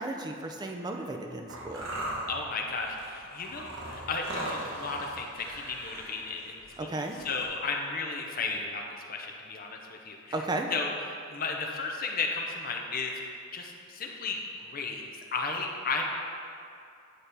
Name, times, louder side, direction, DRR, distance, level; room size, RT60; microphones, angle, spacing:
voice 1, 0.0-1.9 6.8-7.2 10.3-10.7, right 2 dB, 20° right, 3 dB, 0.4 m, -34 dB
sound 1, 1.5-7.5, right 1 dB, 70° right, 1.1 m, -39 dB
voice 2, 2.3-6.5 6.8-8.8 9.1-10.3 10.7-13.1 13.5-14.4 14.6-15.0 15.3-16.0, left 4 dB, 45° left, 1 dB, 0.6 m, -34 dB
9.0 x 4.1 x 3.4 m, 2.4 s
head